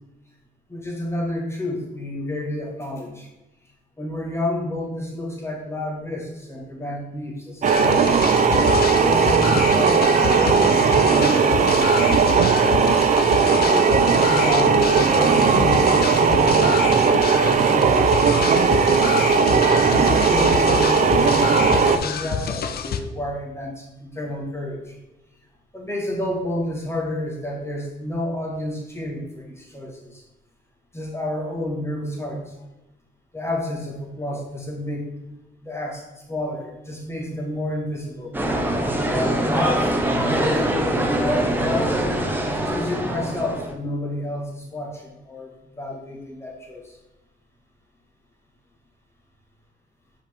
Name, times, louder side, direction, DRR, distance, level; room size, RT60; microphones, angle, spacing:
voice 1, 0.7-3.3 4.0-8.3 9.0-11.7 12.2-12.5 13.6-18.8 19.9-24.9 25.7-30.2 30.9-32.5 33.3-35.1 35.6-38.3 39.0-42.0 42.5-46.9, left 1 dB, 15° left, -2 dB, 1.7 m, -30 dB
sound 1, 7.6-23.0, left 7 dB, 50° left, 0.5 m, -27 dB
sound 2, 7.6-22.0, right 5 dB, 40° right, 0.5 m, -17 dB
sound 3, 38.3-43.7, right 1 dB, 10° right, 0.8 m, -23 dB
5.5 x 5.0 x 3.6 m, 0.99 s
cardioid pair, 90°, 20 cm